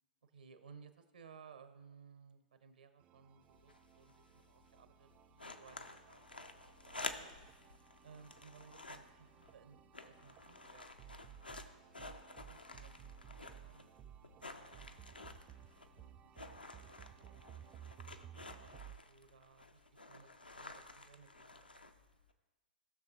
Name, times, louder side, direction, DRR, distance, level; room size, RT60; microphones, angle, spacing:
voice 1, 0.2-7.5 8.0-17.7 18.5-21.7, right 6 dB, 70° right, 9 dB, 0.9 m, -61 dB
sound 1, 3.0-19.0, right 10 dB, 25° right, 0.3 m, -58 dB
sound 2, 3.4-22.3, left 2 dB, 85° left, 0.7 m, -52 dB
18.0 x 6.4 x 2.9 m, 1.2 s
figure-of-eight pair, 105°, 5 cm